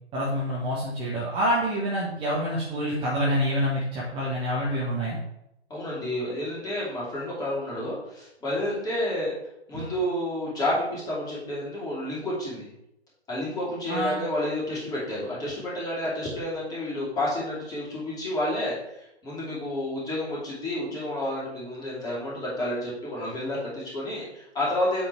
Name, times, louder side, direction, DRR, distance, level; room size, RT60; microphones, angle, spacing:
voice 1, 0.1-5.2 9.7-9.8 13.9-14.2, equal, 15° right, -7 dB, 1.3 m, -27 dB
voice 2, 5.7-9.3 9.7-12.7 13.3-25.1, left 1 dB, 10° left, -6 dB, 2.5 m, -30 dB
8.2 x 3.7 x 4.5 m, 0.82 s
figure-of-eight pair, 130°, 34 cm